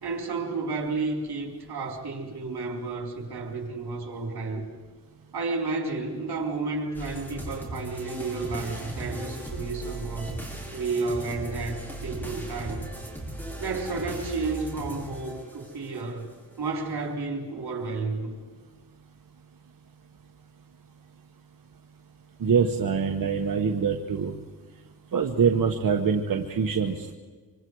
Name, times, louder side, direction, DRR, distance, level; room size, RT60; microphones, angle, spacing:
voice 1, 0.0-4.6 5.3-10.4 10.7-12.9 13.6-16.3 16.6-18.3, right 3 dB, 80° right, 2 dB, 4.1 m, -31 dB
sound 1, 6.9-16.0, right 1 dB, 5° left, 5.9 m, -37 dB
voice 2, 22.4-24.3 25.1-27.1, right 6 dB, 60° right, 3 dB, 1.4 m, -24 dB
26.0 x 25.0 x 4.8 m, 1.5 s
wide cardioid pair, 105°, 38 cm